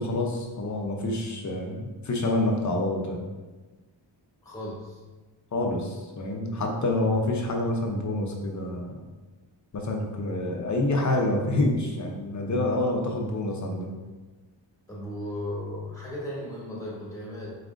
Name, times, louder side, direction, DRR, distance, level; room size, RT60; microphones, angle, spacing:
voice 1, 0.0-3.2 5.5-9.0 9.7-13.9, left 2 dB, 40° left, 1 dB, 0.7 m, -27 dB
voice 2, 4.4-5.0 14.9-17.5, left 1 dB, 5° left, -5 dB, 1.4 m, -36 dB
4.1 x 3.6 x 2.6 m, 1.2 s
wide cardioid pair, 90°, 46 cm